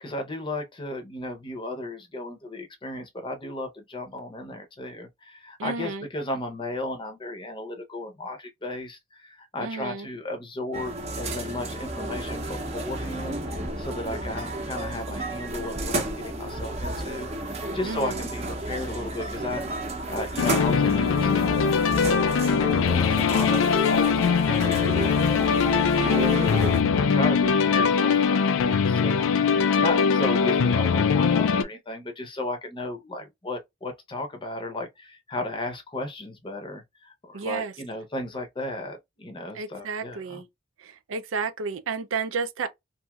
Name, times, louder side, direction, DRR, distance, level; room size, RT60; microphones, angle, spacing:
voice 1, 0.0-25.6 26.1-40.4, left 1 dB, 25° left, 0.7 m, -35 dB
voice 2, 5.6-6.1 9.6-10.1 17.8-18.3 26.0-26.9 37.3-37.7 39.5-40.5 40.8-42.7, right 4 dB, 85° right, 0.5 m, -32 dB
sound 1, 10.7-26.8, right 1 dB, 35° right, 0.7 m, -32 dB
sound 2, 20.4-31.6, left 6 dB, 80° left, 0.4 m, -22 dB
2.9 x 2.6 x 2.3 m
head